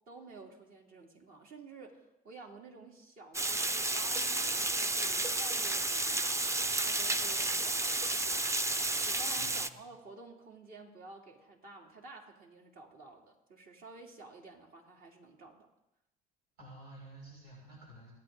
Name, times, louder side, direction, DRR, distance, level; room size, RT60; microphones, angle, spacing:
voice 1, 0.1-6.5 6.8-8.5 9.0-15.7, right 3 dB, 50° right, 0 dB, 3.2 m, -51 dB
Water, 3.3-9.7, right 2 dB, 15° right, 0.7 m, -31 dB
voice 2, 9.3-9.9 16.6-18.1, right 1 dB, 85° right, -5 dB, 6.1 m, -51 dB
26.0 x 10.0 x 3.9 m, 0.90 s
supercardioid pair, 85°, 18 cm